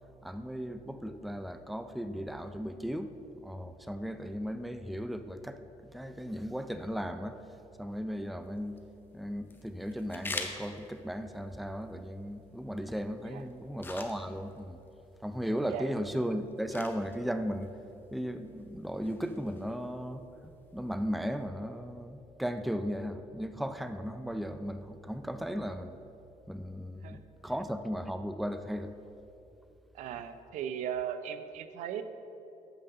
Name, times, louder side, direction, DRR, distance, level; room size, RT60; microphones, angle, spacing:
voice 1, 0.2-3.1 3.4-5.7 5.9-7.4 7.8-8.8 9.1-14.8 15.2-17.7 18.1-26.0 26.5-28.9, equal, ahead, 9 dB, 0.4 m, -36 dB
sound 1, 8.4-21.4, left 3 dB, 15° left, 0.9 m, -48 dB
voice 2, 29.9-32.0, right 9 dB, 90° right, 10 dB, 0.6 m, -37 dB
9.1 x 6.6 x 6.7 m, 2.9 s
cardioid pair, 135°, 12 cm